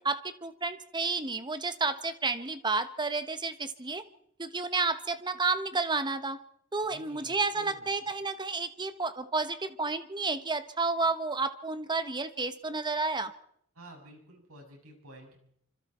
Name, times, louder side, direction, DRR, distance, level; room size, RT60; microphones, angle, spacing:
voice 1, 0.0-4.0 4.4-6.4 6.7-13.3, right 3 dB, 20° right, 11 dB, 1.2 m, -31 dB
voice 2, 6.9-7.9 13.7-15.4, right 1 dB, 75° right, 2 dB, 6.6 m, -51 dB
26.0 x 26.0 x 4.4 m, 0.69 s
head